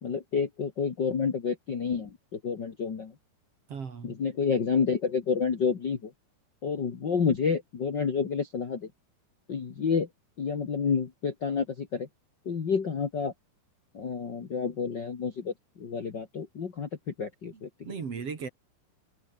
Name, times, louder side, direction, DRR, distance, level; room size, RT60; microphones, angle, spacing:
voice 1, 0.0-3.1 4.0-6.1 6.6-8.9 9.5-10.1 10.4-12.1 12.5-13.3 13.9-17.7, left 6 dB, 40° left, 2.0 m, -29 dB
voice 2, 3.7-4.2 17.9-18.5, right 6 dB, 45° right, 3.5 m, -36 dB
omnidirectional pair, 4.0 m